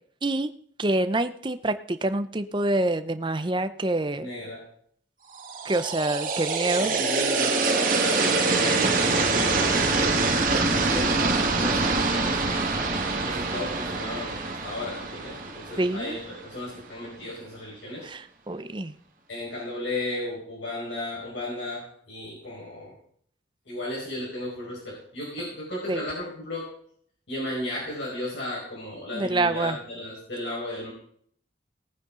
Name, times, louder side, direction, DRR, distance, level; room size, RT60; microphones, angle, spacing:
voice 1, 0.8-4.3 5.6-7.0 15.8-16.2 18.0-18.9 25.9-26.0 29.1-29.8, right 2 dB, 25° right, 10 dB, 0.6 m, -26 dB
voice 2, 4.2-4.6 6.8-12.6 13.2-18.1 19.3-22.9 23.6-26.7 27.3-30.9, left 1 dB, 75° left, -5 dB, 5.1 m, -35 dB
sound 1, 5.4-16.4, right 3 dB, 45° right, 1.6 m, -25 dB
18.5 x 9.5 x 3.8 m, 0.62 s
head